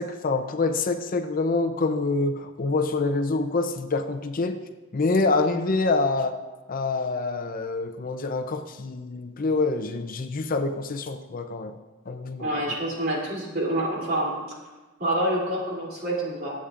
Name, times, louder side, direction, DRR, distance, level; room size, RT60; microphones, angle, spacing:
voice 1, 0.0-4.6 4.9-6.4 6.7-11.8 12.1-12.5, left 3 dB, 45° left, 8 dB, 0.6 m, -26 dB
voice 2, 12.4-14.3 15.0-16.5, right 1 dB, 50° right, -3 dB, 3.0 m, -27 dB
22.5 x 8.4 x 2.5 m, 1.2 s
head